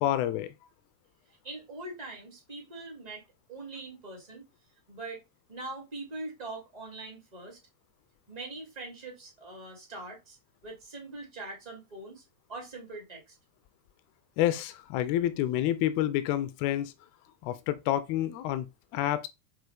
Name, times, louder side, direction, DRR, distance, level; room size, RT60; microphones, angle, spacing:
voice 1, 0.0-0.5 14.4-16.9 17.4-19.3, left 13 dB, 45° left, 0.4 m, -28 dB
voice 2, 1.4-3.2 3.5-4.5 4.9-5.2 5.5-7.6 8.3-10.4 10.6-12.2 12.5-13.3, right 2 dB, 45° right, 2.8 m, -42 dB
5.3 x 2.6 x 3.5 m
figure-of-eight pair, 90°, 0 cm